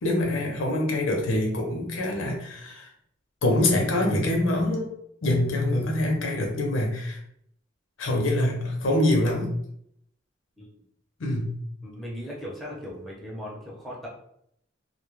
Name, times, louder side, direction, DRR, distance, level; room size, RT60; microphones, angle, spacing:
voice 1, 0.0-2.9 3.4-4.9 5.2-7.2 8.0-9.5 11.2-11.6, left 1 dB, 85° left, 1 dB, 0.6 m, -25 dB
voice 2, 11.8-14.1, equal, ahead, -4 dB, 0.6 m, -38 dB
2.2 x 2.0 x 3.0 m, 0.72 s
head